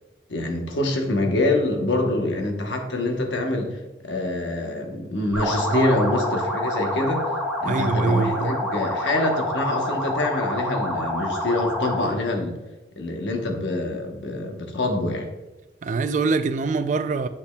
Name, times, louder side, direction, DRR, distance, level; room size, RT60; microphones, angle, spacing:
voice 1, 0.3-7.2 7.6-12.6 13.0-15.3, left 2 dB, 85° left, 1.0 m, -25 dB
sound 1, 5.3-12.1, left 1 dB, 5° right, 1.1 m, -27 dB
voice 2, 5.7-6.0 7.6-8.6 15.8-17.3, right 4 dB, 45° right, 0.3 m, -24 dB
8.5 x 5.4 x 2.2 m
head